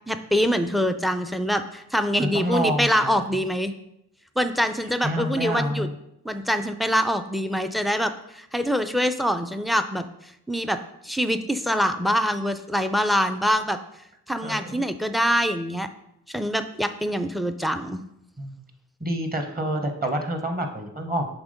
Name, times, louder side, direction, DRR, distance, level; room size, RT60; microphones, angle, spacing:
voice 1, 0.1-3.7 4.4-5.9 6.2-10.1 10.5-10.8 11.0-13.8 14.3-15.9 16.3-18.0, equal, ahead, 9 dB, 0.5 m, -24 dB
voice 2, 2.2-3.1 5.0-5.9 14.4-14.8 18.4-18.6 19.0-21.3, equal, 25° right, 4 dB, 1.2 m, -27 dB
6.0 x 3.5 x 5.2 m, 0.80 s
cardioid pair, 60°, 38 cm